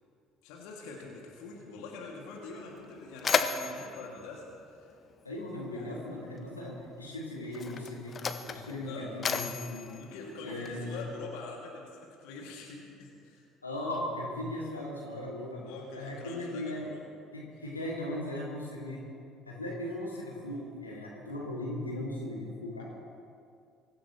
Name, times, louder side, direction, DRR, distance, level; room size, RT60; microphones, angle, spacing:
voice 1, 0.4-4.9 5.7-6.0 8.8-9.1 9.9-13.5 15.6-17.1 20.4-20.6, left 3 dB, 60° left, -2 dB, 2.5 m, -45 dB
Mechanisms, 2.3-2.4 2.7-5.5 6.5-6.6 7.4-11.0, left 5 dB, 35° left, 0.9 m, -34 dB
voice 2, 5.2-9.9 10.4-11.0 13.6-15.6 15.9-16.9 17.3-19.0 19.5-22.8, left 1 dB, 85° left, -4 dB, 2.5 m, -38 dB
24.0 x 14.5 x 3.2 m, 2.4 s
figure-of-eight pair, 55°, 0 cm